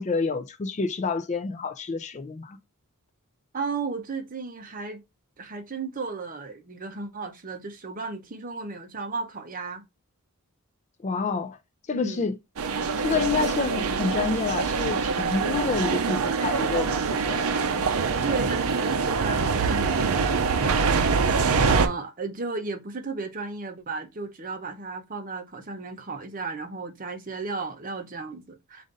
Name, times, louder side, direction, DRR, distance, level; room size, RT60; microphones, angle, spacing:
voice 1, 0.0-2.6 11.0-11.6 11.9-12.4 13.0-17.0 17.3-17.6, left 4 dB, 30° left, 0.4 m, -28 dB
voice 2, 3.5-5.0 5.4-9.8 11.9-12.3 18.3-20.8 21.6-28.8, right 4 dB, 40° right, 0.7 m, -34 dB
sound 1, 12.6-21.9, right 5 dB, 75° right, 0.6 m, -24 dB
5.0 x 2.6 x 3.8 m
head